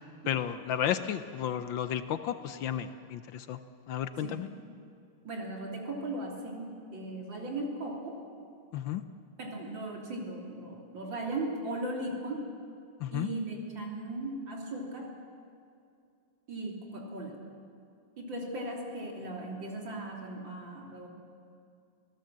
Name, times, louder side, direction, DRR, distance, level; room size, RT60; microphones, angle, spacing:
voice 1, 0.3-3.6 3.9-4.5 8.7-9.0 13.0-13.3, left 10 dB, 70° left, 11 dB, 1.4 m, -33 dB
voice 2, 5.2-8.2 9.4-12.5 13.1-15.1 16.5-17.4 18.2-21.1, right 2 dB, 60° right, -1 dB, 3.9 m, -37 dB
26.5 x 17.0 x 7.5 m, 2.4 s
omnidirectional pair, 2.3 m